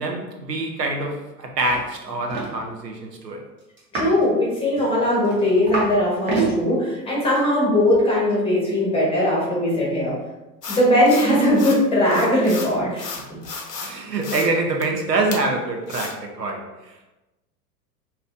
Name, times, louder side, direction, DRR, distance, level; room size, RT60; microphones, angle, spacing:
voice 1, 0.0-3.4 13.8-17.1, right 2 dB, 75° right, 2 dB, 0.8 m, -25 dB
sound 1, 1.7-1.8 2.1-2.5 3.8-4.2 4.8-5.9 6.2-6.5 7.2-7.4, right 4 dB, 25° right, 0.9 m, -27 dB
voice 2, 3.9-10.1 10.7-13.1, left 1 dB, 10° left, -6 dB, 1.2 m, -19 dB
sound 2, 10.6-11.8 12.1-13.9 14.2-14.5 14.8-14.9 15.3-15.4 15.9-16.1, left 4 dB, 75° left, 0.8 m, -33 dB
4.8 x 2.8 x 2.5 m, 1.0 s
figure-of-eight pair, 95°, 49 cm